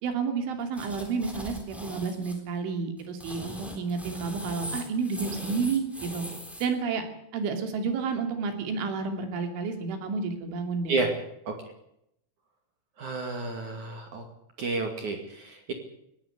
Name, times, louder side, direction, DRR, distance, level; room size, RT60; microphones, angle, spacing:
voice 1, 0.0-6.3 6.6-7.0 7.3-11.0, right 5 dB, 80° right, 6 dB, 5.3 m, -30 dB
sound 1, 0.7-2.4 3.0-6.7, left 1 dB, ahead, 3.0 m, -40 dB
voice 2, 13.0-14.3 14.6-15.7, right 3 dB, 45° right, 4 dB, 3.2 m, -31 dB
20.0 x 16.5 x 8.2 m, 0.77 s
omnidirectional pair, 5.4 m